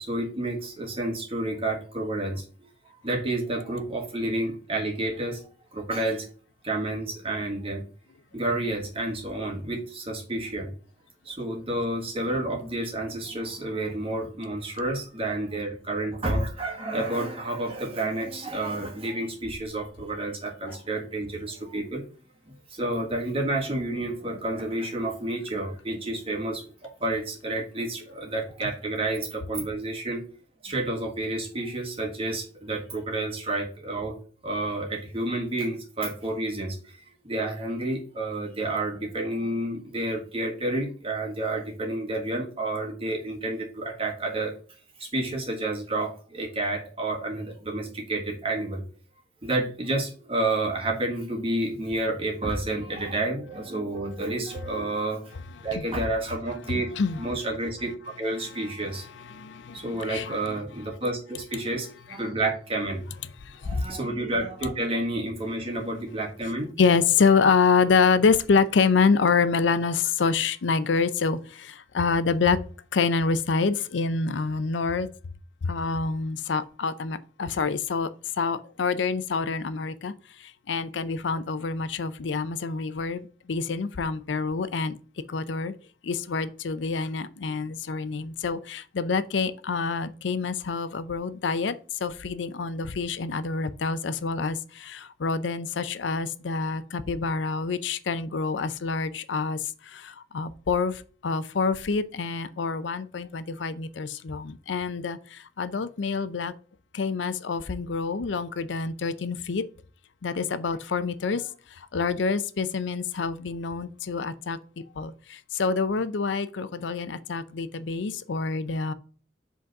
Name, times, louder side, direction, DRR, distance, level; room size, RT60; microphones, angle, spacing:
voice 1, 0.0-2.7 3.0-5.4 5.7-6.2 6.6-7.8 8.3-10.7 11.2-22.0 22.7-30.2 30.6-34.1 34.4-37.0 37.2-44.5 45.0-48.8 49.4-55.2 55.6-56.9 57.2-59.1 59.7-63.1 63.6-66.7, right 2 dB, 30° right, 1.7 m, -30 dB
voice 2, 58.8-60.6 63.4-63.9 66.8-72.6 72.9-75.1 75.6-78.1 78.4-85.0 85.3-85.7 86.0-106.5 106.9-109.6 110.2-118.9, left 5 dB, 90° left, 0.5 m, -27 dB
5.2 x 3.9 x 5.8 m
head